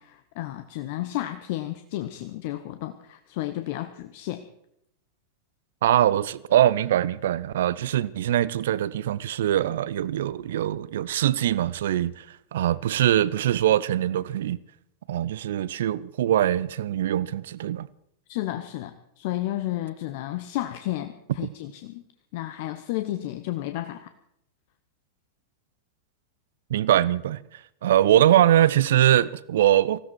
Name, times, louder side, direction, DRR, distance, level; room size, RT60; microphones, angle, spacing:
voice 1, 0.0-4.4 18.3-22.0 22.3-24.1, left 15 dB, 50° left, 0.9 m, -32 dB
voice 2, 5.8-14.6 15.1-17.9 26.7-30.0, right 12 dB, 60° right, 0.6 m, -22 dB
19.5 x 16.0 x 4.7 m
figure-of-eight pair, 90°, 0 cm